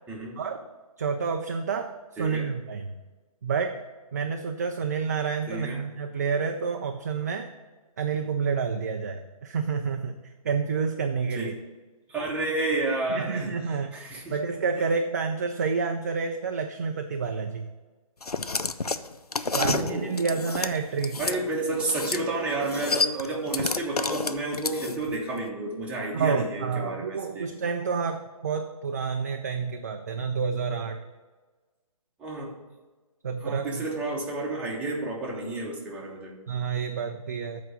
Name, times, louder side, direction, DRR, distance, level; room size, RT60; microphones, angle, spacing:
voice 1, 0.4-0.7 1.0-2.9 3.4-3.8 4.1-7.5 8.0-10.2 10.4-11.5 13.1-17.7 19.5-21.2 26.1-31.0 33.2-33.9 36.5-37.6, right 5 dB, 30° right, 5 dB, 0.4 m, -29 dB
voice 2, 2.2-2.5 5.5-5.8 11.4-11.5 12.1-14.4 14.8-14.9 19.5-20.2 21.2-27.5 32.2-32.6 33.4-36.3, right 2 dB, 5° right, -3 dB, 0.9 m, -31 dB
sound 1, 18.2-21.4 21.8-22.2 22.5-25.1, left 4 dB, 85° left, 0.5 m, -29 dB
7.7 x 4.7 x 6.5 m, 1.3 s
figure-of-eight pair, 140°, 19 cm